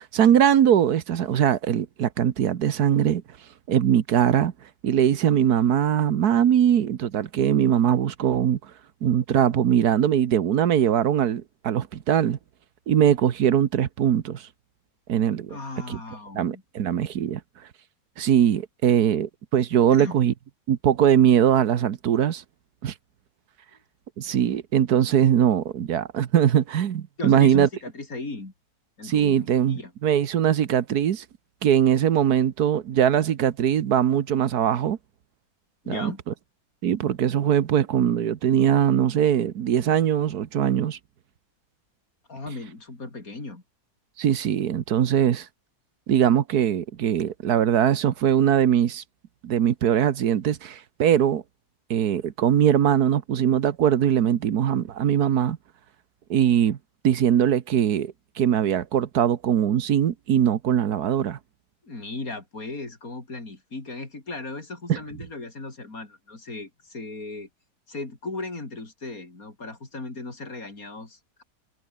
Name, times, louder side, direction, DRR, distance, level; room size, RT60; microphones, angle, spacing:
voice 1, 0.0-3.2 3.7-4.5 4.8-8.6 9.0-12.4 12.9-14.5 15.1-15.6 15.9-16.0 16.3-17.4 18.2-20.3 20.7-22.4 22.8-22.9 24.2-27.7 29.0-31.2 31.6-35.0 35.9-36.1 36.8-41.0 44.2-45.5 46.1-49.0 49.4-51.4 51.9-55.6 56.3-56.8 57.0-61.4 64.9-65.0, right 9 dB, 75° right, 1.6 m, -21 dB
voice 2, 15.5-16.6 19.9-20.1 27.2-28.5 29.0-29.9 35.8-36.2 42.3-43.6 61.8-67.5 67.9-71.4, left 3 dB, 65° left, 4.9 m, -36 dB
omnidirectional pair, 1.6 m